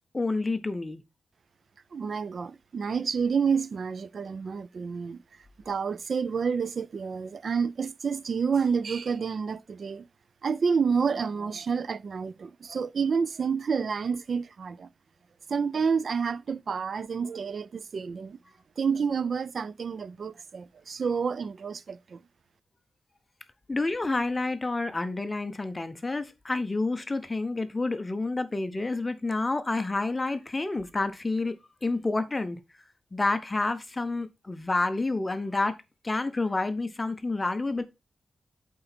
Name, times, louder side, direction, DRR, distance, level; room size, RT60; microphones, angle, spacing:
voice 1, 0.1-1.0 23.7-31.5 31.8-32.6 33.1-35.8 36.0-37.8, left 2 dB, 20° left, 0.7 m, -29 dB
voice 2, 1.9-5.2 5.7-10.1 10.4-14.9 15.5-18.4 18.8-22.2, right 6 dB, 55° right, 0.3 m, -29 dB
8.3 x 4.0 x 4.2 m
wide cardioid pair, 120°, 0 cm